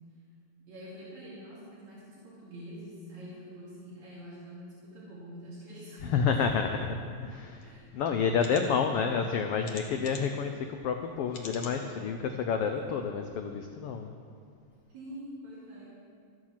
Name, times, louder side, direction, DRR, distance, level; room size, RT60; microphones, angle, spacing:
voice 1, 0.6-6.9 7.6-7.9 8.2-9.3 14.9-15.9, equal, 70° right, -8 dB, 3.9 m, -46 dB
voice 2, 6.0-7.0 7.2-14.1, left 6 dB, 75° left, 5 dB, 1.4 m, -29 dB
sound 1, 7.6-7.7 8.3-8.6 9.6-10.4 11.3-11.8 12.3-12.4 12.8-12.9, left 4 dB, 50° left, 1.7 m, -44 dB
13.0 x 8.8 x 7.4 m, 2.1 s
omnidirectional pair, 3.3 m